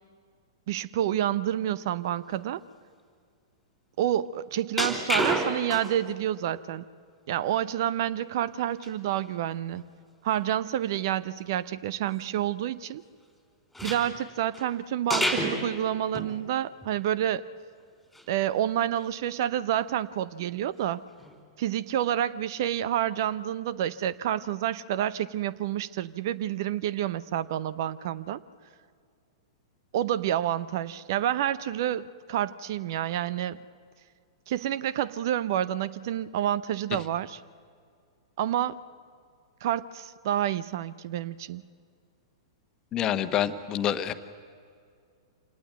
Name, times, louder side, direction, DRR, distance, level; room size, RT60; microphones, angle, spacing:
voice 1, 0.7-2.6 4.0-6.9 7.3-9.8 10.2-13.0 13.8-17.4 18.3-21.0 21.6-28.4 29.9-33.6 34.5-37.4 38.4-38.8 39.6-41.6, right 11 dB, 55° right, 18 dB, 0.7 m, -28 dB
sound 1, 4.8-6.1 6.5-6.6 8.8-8.9 9.2-9.3 9.8-9.9 13.7-14.7 15.1-15.6 16.1-16.3 16.8-16.9 18.1-18.2 18.7-19.0 21.2-21.4, equal, ahead, 4.4 m, -29 dB
voice 2, 42.9-44.1, left 10 dB, 30° left, 10 dB, 1.3 m, -27 dB
26.5 x 18.5 x 9.3 m, 2.2 s
figure-of-eight pair, 105°, 2 cm